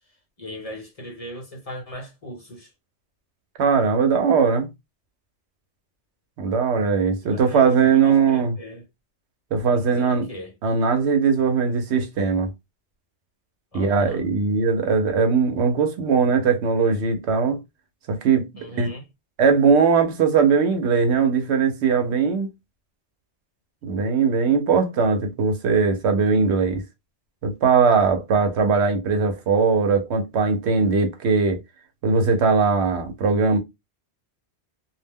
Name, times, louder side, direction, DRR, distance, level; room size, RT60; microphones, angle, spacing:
voice 1, 0.4-2.7 7.2-8.8 9.7-10.5 13.7-14.3 18.6-19.0, equal, 35° left, 0.9 m, -38 dB
voice 2, 3.6-4.7 6.4-8.6 9.5-10.3 10.6-12.5 13.7-17.6 18.1-18.5 18.8-18.9 19.4-22.5 23.8-26.8 27.4-31.6 32.0-33.6, right 5 dB, 75° right, 0.9 m, -20 dB
2.4 x 2.1 x 3.4 m
omnidirectional pair, 1.1 m